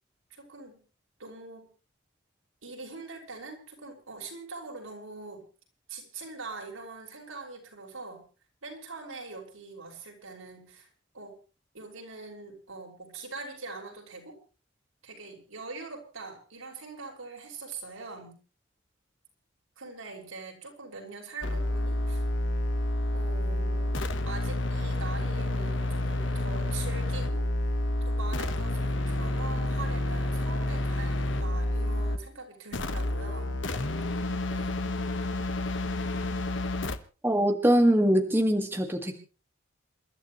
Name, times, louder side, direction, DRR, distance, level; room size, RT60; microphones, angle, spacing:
voice 1, 0.3-0.8 1.2-1.7 2.6-5.5 5.9-8.3 8.6-10.9 11.1-11.4 11.7-14.4 15.0-18.4 19.8-22.2 23.1-24.0 24.3-27.5 28.0-33.6 34.5-34.9, right 3 dB, 80° right, 1 dB, 5.9 m, -43 dB
sound 1, 21.4-32.3 32.7-37.0, left 1 dB, 60° left, 1.3 m, -29 dB
voice 2, 37.2-39.2, equal, 10° right, 4 dB, 1.8 m, -23 dB
28.0 x 13.0 x 3.1 m, 0.35 s
head